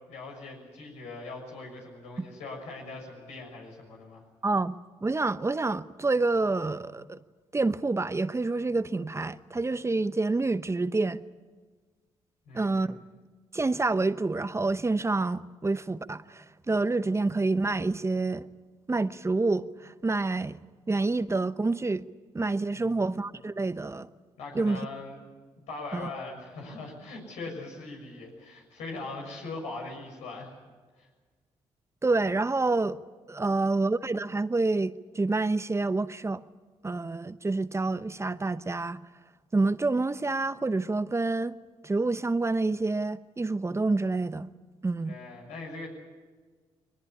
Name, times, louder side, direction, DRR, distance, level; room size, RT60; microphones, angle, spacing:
voice 1, 0.1-4.2 12.5-12.9 22.7-23.0 24.4-25.2 25.7-30.5 31.0-31.1 45.0-45.9, left 3 dB, 85° left, 6.6 m, -41 dB
voice 2, 4.4-4.7 5.0-7.2 7.5-11.2 12.5-13.0 13.5-18.5 18.9-20.6 20.9-22.0 22.3-24.1 24.5-24.8 25.9-26.1 32.0-33.0 33.3-36.4 36.8-39.0 39.5-41.6 41.8-44.5 44.8-45.1, right 3 dB, 25° right, 0.9 m, -28 dB
21.5 x 19.5 x 9.8 m
supercardioid pair, 60°, 12 cm